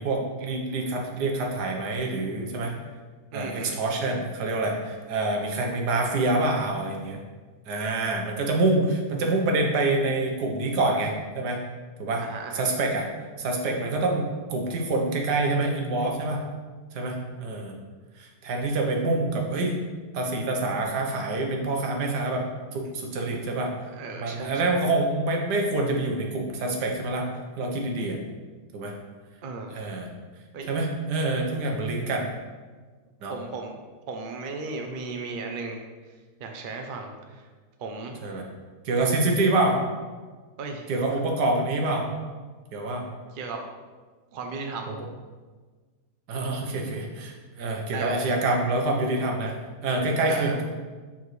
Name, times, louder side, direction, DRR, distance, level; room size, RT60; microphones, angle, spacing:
voice 1, 0.0-2.8 3.3-7.2 7.7-11.6 12.0-12.2 12.5-13.1 13.4-16.4 16.9-17.7 18.2-19.8 20.1-22.5 22.7-23.7 24.2-27.3 27.6-28.2 28.7-28.9 29.7-30.1 30.7-32.3 33.2-33.3 38.2-38.4 38.8-39.8 40.9-42.1 42.7-43.0 44.9-45.0 46.3-49.5 49.8-50.6, right 2 dB, 80° right, 1 dB, 1.5 m, -26 dB
voice 2, 3.3-3.8 12.2-12.7 23.8-24.8 29.4-29.8 30.5-30.7 33.3-33.8 34.1-35.8 36.4-37.5 37.8-38.2 40.6-40.9 43.3-43.6 44.3-44.9 47.9-48.3 50.2-50.6, right 4 dB, 50° right, 3 dB, 0.6 m, -36 dB
7.0 x 5.5 x 3.2 m, 1.4 s
omnidirectional pair, 1.8 m